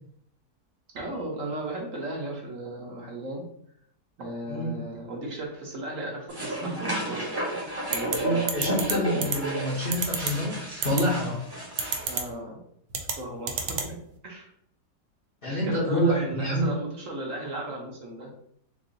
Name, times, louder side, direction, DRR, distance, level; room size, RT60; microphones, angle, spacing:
voice 1, 0.9-3.4 4.2-8.4 12.1-12.6 12.9-14.0 14.2-14.5 15.5-18.3, right 1 dB, 60° right, -1 dB, 1.1 m, -35 dB
sound 1, 6.3-12.2, right 1 dB, 15° right, 0.9 m, -32 dB
sound 2, 7.9-8.2 8.5-8.9 9.2-9.4 9.9-10.3 10.8-11.0 11.8-12.2 12.9-13.1 13.5-13.9, right 6 dB, 85° right, 1.2 m, -27 dB
voice 2, 8.2-11.4 15.4-16.7, equal, 45° left, -5 dB, 0.8 m, -27 dB
3.1 x 2.6 x 3.8 m, 0.68 s
omnidirectional pair, 1.7 m